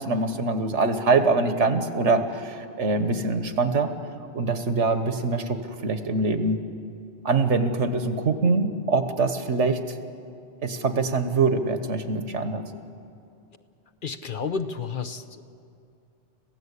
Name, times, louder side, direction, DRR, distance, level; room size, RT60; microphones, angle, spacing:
voice 1, 0.0-3.9 4.3-6.6 7.3-9.8 10.6-12.6, right 3 dB, 85° right, 9 dB, 1.6 m, -24 dB
voice 2, 14.0-15.4, left 5 dB, 50° left, 8 dB, 0.9 m, -31 dB
26.0 x 15.5 x 8.4 m, 2.5 s
omnidirectional pair, 1.2 m